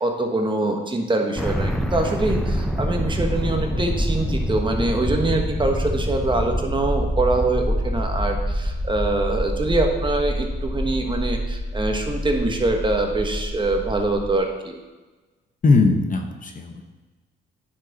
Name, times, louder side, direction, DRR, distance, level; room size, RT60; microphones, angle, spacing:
voice 1, 0.0-14.8, right 2 dB, 25° right, 3 dB, 1.3 m, -24 dB
sound 1, 1.4-14.4, equal, ahead, 0.7 m, -26 dB
voice 2, 15.6-16.8, left 3 dB, 40° left, 4 dB, 1.1 m, -19 dB
10.0 x 6.0 x 4.1 m, 1.2 s
cardioid pair, 90°, 20 cm